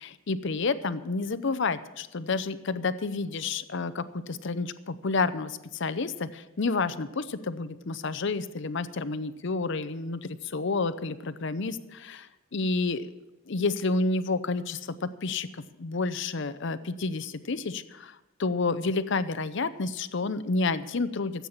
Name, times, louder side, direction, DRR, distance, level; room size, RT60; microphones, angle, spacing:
voice 1, 0.0-13.1 13.5-21.5, left 3 dB, 55° left, 13 dB, 0.7 m, -30 dB
14.5 x 8.3 x 7.2 m, 1.0 s
head